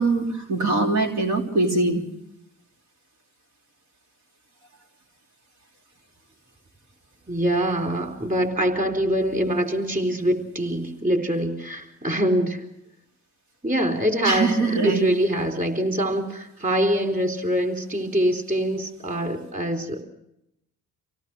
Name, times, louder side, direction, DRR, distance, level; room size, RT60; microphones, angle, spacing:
voice 1, 0.0-2.0 14.2-15.1, right 3 dB, 90° right, 1 dB, 3.5 m, -22 dB
voice 2, 7.3-12.6 13.6-20.0, equal, 25° right, 5 dB, 4.1 m, -24 dB
26.5 x 17.5 x 6.2 m, 0.82 s
cardioid pair, 90°, 30 cm